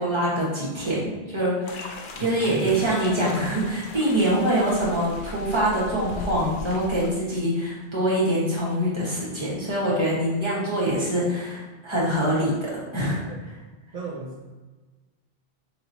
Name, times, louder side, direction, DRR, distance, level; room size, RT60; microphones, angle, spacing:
voice 1, 0.0-13.3, right 1 dB, 25° right, -7 dB, 1.3 m, -24 dB
sound 1, 1.7-7.1, left 2 dB, 60° left, 0.7 m, -39 dB
voice 2, 2.2-2.7 13.3-13.4 13.9-14.5, right 2 dB, 45° right, -4 dB, 0.6 m, -35 dB
5.6 x 2.9 x 2.7 m, 1.3 s
omnidirectional pair, 1.1 m